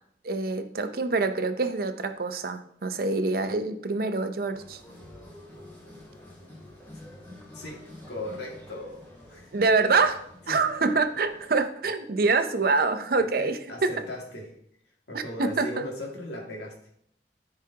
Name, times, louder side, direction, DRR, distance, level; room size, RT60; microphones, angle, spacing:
voice 1, 0.2-4.8 9.5-13.9 15.1-15.8, right 3 dB, 55° right, 9 dB, 0.6 m, -26 dB
sound 1, 4.5-11.6, left 1 dB, 15° left, 2.2 m, -48 dB
voice 2, 7.5-9.0 9.3-9.5 10.5-10.6 13.2-14.5 15.1-16.7, left 1 dB, 75° left, -1 dB, 2.1 m, -38 dB
13.0 x 4.9 x 2.9 m, 0.69 s
head